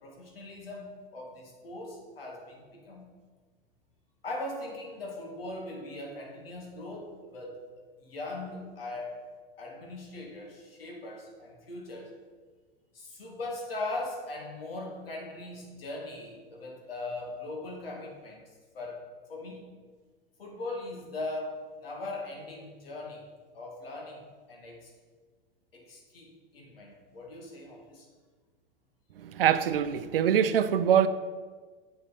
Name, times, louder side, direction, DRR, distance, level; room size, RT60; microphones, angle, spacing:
voice 1, 0.0-3.1 4.2-7.6 8.0-9.2 9.6-12.1 12.9-18.4 18.7-19.8 20.4-23.3 23.5-24.9 25.7-28.1, left 2 dB, 75° left, 2.1 m, -40 dB
voice 2, 29.2-31.1, right 9 dB, 75° right, 0.6 m, -24 dB
7.8 x 6.8 x 4.3 m
hypercardioid pair, 95°, 29 cm